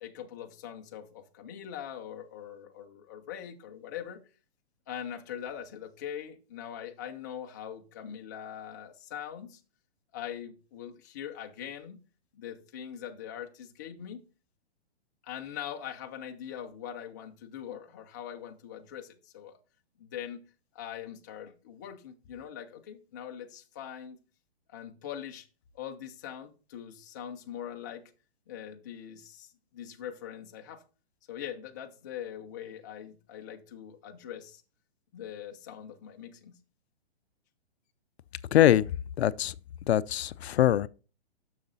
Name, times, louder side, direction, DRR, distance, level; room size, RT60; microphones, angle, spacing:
voice 1, 0.0-4.2 4.9-9.6 10.1-12.0 12.3-14.2 15.2-19.6 20.0-20.4 20.7-24.2 24.7-25.5 25.7-28.0 28.5-30.8 31.3-34.6 35.1-36.6, left 9 dB, 20° left, 0.4 m, -42 dB
voice 2, 38.5-38.9 39.2-39.5 39.9-40.9, left 12 dB, 75° left, 0.5 m, -23 dB
6.7 x 6.5 x 4.0 m
hypercardioid pair, 160°, 32 cm